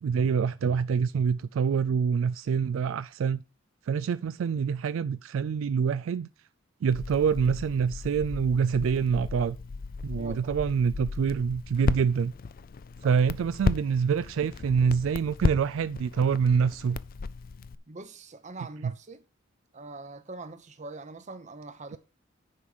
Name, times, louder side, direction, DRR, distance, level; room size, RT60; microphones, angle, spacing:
voice 1, 0.0-3.4 3.9-6.3 6.8-9.6 10.0-12.3 13.0-17.0, right 6 dB, 75° right, 0.3 m, -26 dB
Crackle, 6.9-17.7, left 4 dB, 45° left, 0.4 m, -35 dB
voice 2, 10.2-10.6 13.0-13.2 17.9-19.2 19.7-22.0, right 3 dB, 35° right, 0.9 m, -43 dB
9.8 x 4.7 x 5.5 m
head